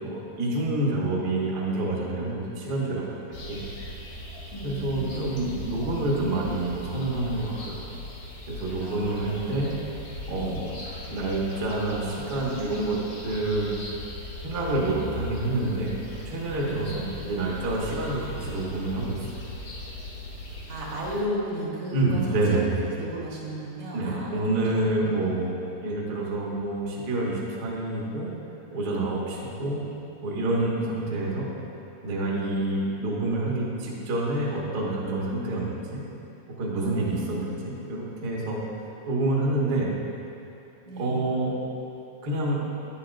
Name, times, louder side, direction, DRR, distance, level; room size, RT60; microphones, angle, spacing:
voice 1, 0.0-3.0 3.5-3.6 4.6-7.8 8.5-9.7 10.3-10.7 11.1-13.0 13.2-13.7 14.4-15.9 16.2-19.2 21.9-22.8 23.9-25.6 25.8-28.3 28.7-29.8 30.2-31.5 32.0-36.0 36.6-38.6 39.1-39.9 41.0-41.5 42.2-42.6, right 2 dB, 55° right, -5 dB, 1.0 m, -27 dB
sound 1, 3.3-21.2, left 1 dB, 65° left, 1.0 m, -39 dB
voice 2, 4.5-5.3 8.8-9.5 10.3-10.6 16.6-16.9 20.7-22.2 22.5-22.6 22.9-25.4 30.9-31.6 36.7-37.7 40.9-41.2, equal, 75° right, -5 dB, 2.7 m, -35 dB
9.6 x 8.4 x 2.5 m, 2.8 s
omnidirectional pair, 3.5 m